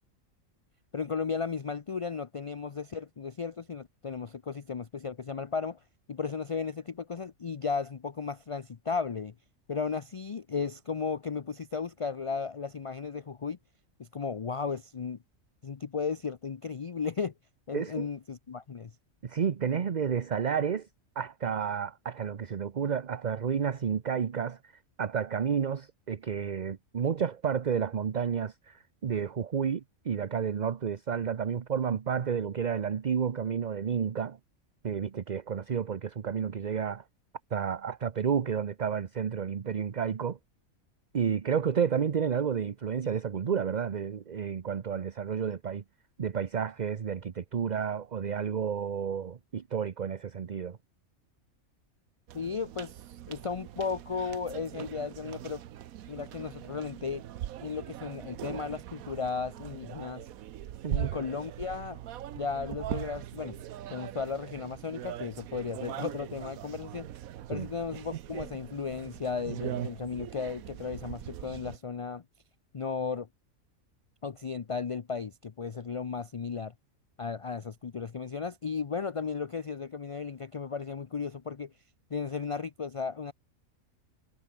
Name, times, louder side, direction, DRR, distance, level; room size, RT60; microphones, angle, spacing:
voice 1, 0.9-5.8 6.1-9.3 9.7-13.6 14.0-15.2 15.6-17.3 17.7-18.9 52.3-55.6 56.1-57.2 57.6-60.3 60.9-62.0 62.4-63.6 63.9-67.1 67.5-72.2 72.7-73.3 74.2-76.7 77.2-81.7 82.1-83.3, left 5 dB, 50° left, 0.4 m, -35 dB
voice 2, 17.7-18.0 19.2-20.9 21.2-24.6 25.0-34.4 34.8-37.0 37.5-40.4 41.1-45.8 46.2-50.8 60.8-61.1 67.5-67.7, right 7 dB, 40° right, 0.7 m, -31 dB
sound 1, 52.3-71.8, right 12 dB, 85° right, 1.2 m, -41 dB
omnidirectional pair, 1.4 m